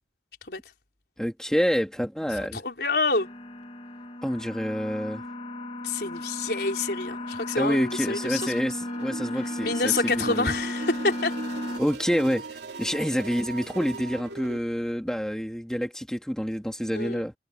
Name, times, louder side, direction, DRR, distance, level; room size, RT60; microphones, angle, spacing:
voice 1, 1.2-2.6 4.2-5.2 7.6-10.5 11.8-12.5 12.8-17.3, equal, 5° left, 2.5 m, -27 dB
voice 2, 2.5-3.3 5.8-8.5 9.6-11.3 16.9-17.3, left 3 dB, 65° left, 4.1 m, -27 dB
sound 1, 3.1-11.8, left 1 dB, 30° left, 1.3 m, -35 dB
sound 2, 8.6-14.6, right 2 dB, 75° right, 2.9 m, -39 dB
head